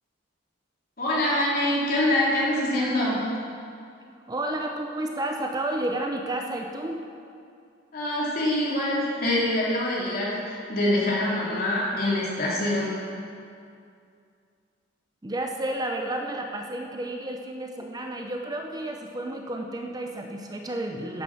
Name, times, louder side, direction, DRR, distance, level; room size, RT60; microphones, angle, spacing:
voice 1, 1.0-3.2 7.9-12.9, left 1 dB, 50° left, -6 dB, 3.0 m, -25 dB
voice 2, 4.3-7.0 15.2-21.2, right 1 dB, 20° right, 2 dB, 0.6 m, -31 dB
10.5 x 8.7 x 5.9 m, 2.4 s
head